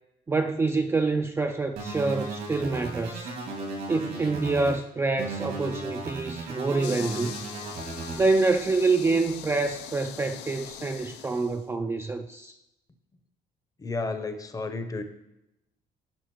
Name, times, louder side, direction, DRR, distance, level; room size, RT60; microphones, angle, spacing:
voice 1, 0.3-3.3 3.9-7.3 8.1-12.6, right 3 dB, 15° right, 0.3 m, -26 dB
sound 1, 1.8-4.8 5.2-8.2, right 3 dB, 85° right, 2.4 m, -36 dB
sound 2, 6.8-11.6, left 10 dB, 80° left, 0.5 m, -42 dB
voice 2, 13.8-15.0, left 3 dB, 20° left, 0.7 m, -32 dB
11.5 x 4.8 x 3.0 m
cardioid pair, 110°, 17 cm